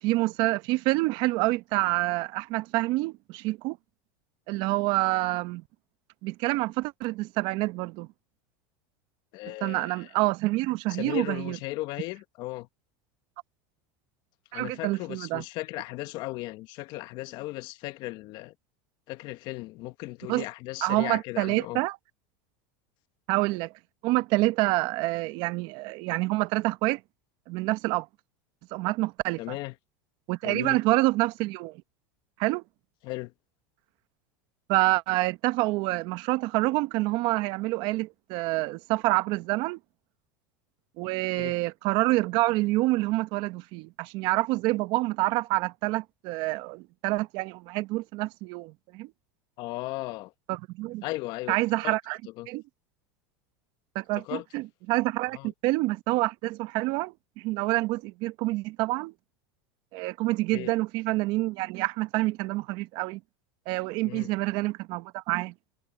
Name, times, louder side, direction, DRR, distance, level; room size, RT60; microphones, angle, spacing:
voice 1, 0.0-3.8 4.5-5.6 6.2-8.1 9.6-11.6 14.5-15.4 20.3-20.4 20.8-22.0 23.3-23.7 24.0-27.0 27.5-28.1 28.7-29.6 30.3-31.8 32.4-32.6 34.7-39.8 41.0-49.1 50.5-51.0 51.5-52.2 52.5-52.6 53.9-59.1 59.9-63.2 63.7-65.5, right 20 dB, 55° right, 1.0 m, -27 dB
voice 2, 9.3-10.1 10.9-12.7 14.5-18.5 19.1-21.8 29.4-29.7 30.4-30.8 33.0-33.3 41.4-41.5 49.6-50.3 51.0-51.9 52.4-52.5 54.2-54.4 55.3-55.5 60.5-60.8 64.0-64.3, left 19 dB, 55° left, 1.6 m, -36 dB
supercardioid pair, 120°, 9 cm